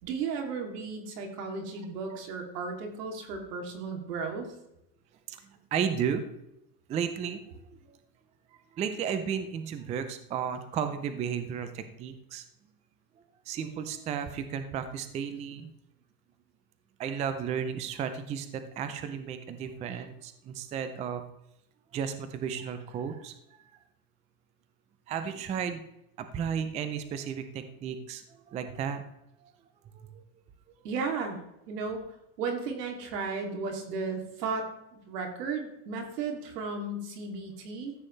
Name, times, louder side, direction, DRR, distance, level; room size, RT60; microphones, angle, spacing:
voice 1, 0.0-4.5 30.8-31.4 31.7-32.0 32.4-37.9, right 4 dB, 80° right, 3 dB, 2.9 m, -34 dB
voice 2, 5.3-6.3 6.9-8.0 8.7-12.4 13.5-15.7 17.0-21.2 21.9-23.3 25.1-25.8 26.2-29.1 29.4-29.5 29.9-30.2, right 7 dB, 15° right, 10 dB, 0.4 m, -34 dB
14.0 x 8.3 x 3.3 m, 0.85 s
supercardioid pair, 145°, 47 cm